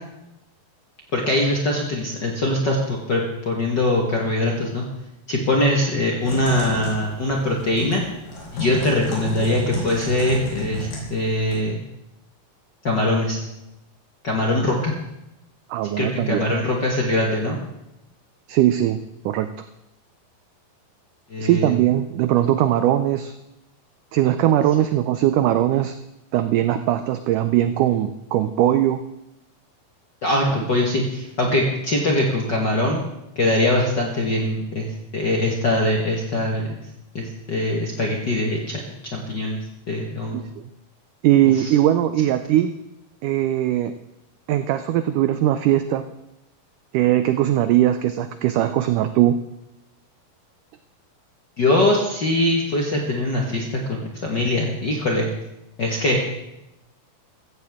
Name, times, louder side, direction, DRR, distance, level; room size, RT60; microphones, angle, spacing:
voice 1, 1.1-4.8 5.3-8.0 8.5-11.8 12.8-13.4 14.2-14.9 16.0-17.6 21.3-21.7 30.2-33.0 33.3-34.9 35.1-36.8 37.1-38.8 39.1-40.5 41.6-41.7 51.6-53.6 53.9-55.3 55.8-56.2, left 1 dB, 55° left, -1 dB, 1.2 m, -22 dB
Typing, 6.2-11.6, left 1 dB, 85° left, 5.6 m, -32 dB
voice 2, 15.7-16.5 18.5-19.0 19.3-19.5 21.4-23.3 24.1-25.9 26.3-29.0 30.5-30.7 40.3-40.6 41.2-42.7 43.2-43.9 44.5-46.1 46.9-49.4, right 12 dB, 90° right, 10 dB, 1.8 m, -20 dB
15.5 x 15.5 x 3.6 m, 0.89 s
omnidirectional pair, 4.3 m